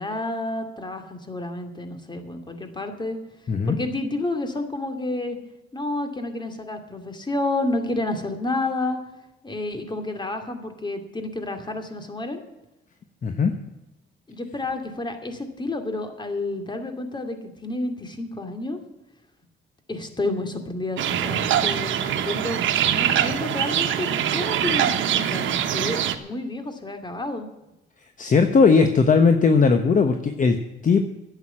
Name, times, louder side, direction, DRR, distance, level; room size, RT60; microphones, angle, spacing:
voice 1, 0.0-3.2 3.7-5.4 5.7-9.0 9.4-12.4 14.3-18.8 19.9-22.6 22.9-27.5, left 2 dB, 20° left, 6 dB, 2.5 m, -30 dB
voice 2, 13.2-13.5 28.2-31.0, left 5 dB, 40° left, 7 dB, 1.1 m, -18 dB
sound 1, 21.0-26.2, right 10 dB, 75° right, 1.2 m, -23 dB
11.5 x 8.3 x 9.8 m, 0.95 s
cardioid pair, 90°, 20 cm